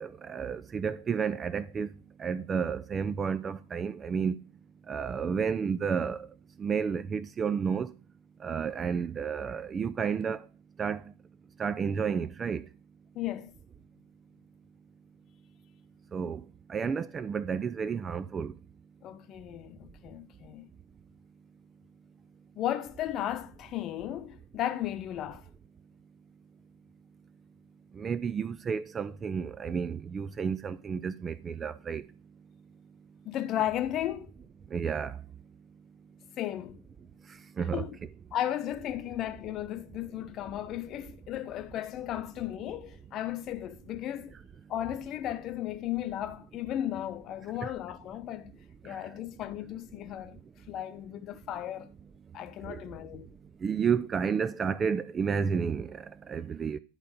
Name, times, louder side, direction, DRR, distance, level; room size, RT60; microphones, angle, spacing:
voice 1, 0.0-1.9 2.2-4.3 4.9-6.3 6.6-7.9 8.4-10.4 10.8-11.0 11.6-12.6 16.1-16.4 16.7-18.5 28.0-32.0 34.7-35.2 37.6-37.9 47.6-47.7 52.7-52.8 53.6-55.9 56.3-56.8, right 6 dB, 20° right, 0.3 m, -31 dB
voice 2, 13.1-13.5 19.0-20.7 22.6-25.5 33.2-34.3 36.4-36.8 37.7-38.0 38.3-44.3 44.7-48.5 48.8-50.4 50.7-51.9 52.3-53.3, left 12 dB, 35° left, 0.9 m, -35 dB
10.5 x 3.7 x 6.9 m
figure-of-eight pair, 90°, 0 cm